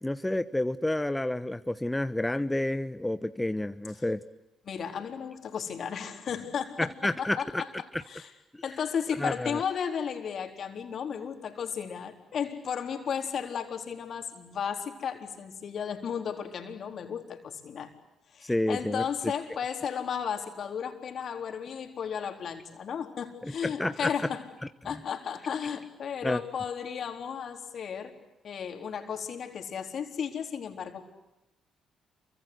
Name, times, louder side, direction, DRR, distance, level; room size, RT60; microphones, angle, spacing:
voice 1, 0.0-4.2 6.8-7.6 7.9-8.0 8.5-8.6 9.2-9.6 18.4-19.0 23.4-24.1 26.2-26.4, left 1 dB, 10° left, 11 dB, 1.1 m, -30 dB
voice 2, 4.7-7.7 8.1-8.3 8.6-17.9 18.3-24.5 24.8-28.1 28.4-31.0, left 7 dB, 60° left, 6 dB, 4.0 m, -34 dB
28.5 x 24.5 x 8.1 m, 1.0 s
hypercardioid pair, 50°, 0 cm